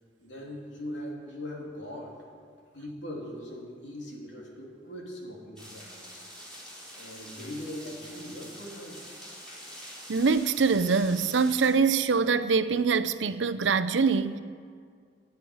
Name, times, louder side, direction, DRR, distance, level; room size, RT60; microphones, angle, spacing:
voice 1, 0.2-2.1 2.7-6.2 6.9-9.0, left 1 dB, 80° left, -2 dB, 3.0 m, -40 dB
sound 1, 5.6-11.7, equal, 5° left, 4.1 m, -46 dB
voice 2, 10.1-14.4, right 5 dB, 85° right, 12 dB, 0.6 m, -24 dB
10.5 x 10.0 x 9.4 m, 2.1 s
head